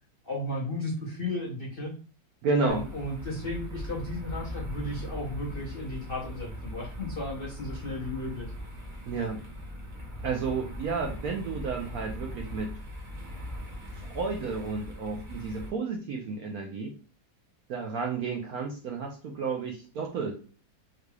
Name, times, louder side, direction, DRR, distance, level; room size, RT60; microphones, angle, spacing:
voice 1, 0.2-2.0 2.6-8.5, left 1 dB, 65° left, -4 dB, 0.5 m, -34 dB
voice 2, 2.4-2.9 9.0-9.4 10.2-12.8 14.0-16.9 17.7-20.4, right 4 dB, 70° right, 1 dB, 0.9 m, -31 dB
sound 1, 2.7-15.7, left 1 dB, 55° right, 0.5 m, -40 dB
3.8 x 3.0 x 2.3 m, 0.38 s
omnidirectional pair, 2.1 m